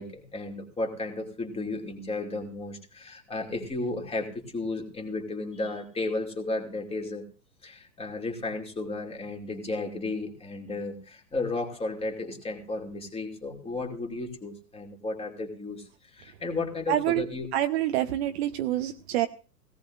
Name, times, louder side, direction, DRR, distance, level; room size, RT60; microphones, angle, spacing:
voice 1, 0.0-7.2 7.6-15.9 16.1-17.5, left 2 dB, 10° left, 3 dB, 2.5 m, -34 dB
voice 2, 16.9-17.2 17.5-19.3, right 13 dB, 40° right, 8 dB, 0.9 m, -26 dB
17.5 x 17.0 x 2.5 m, 0.36 s
figure-of-eight pair, 105°, 48 cm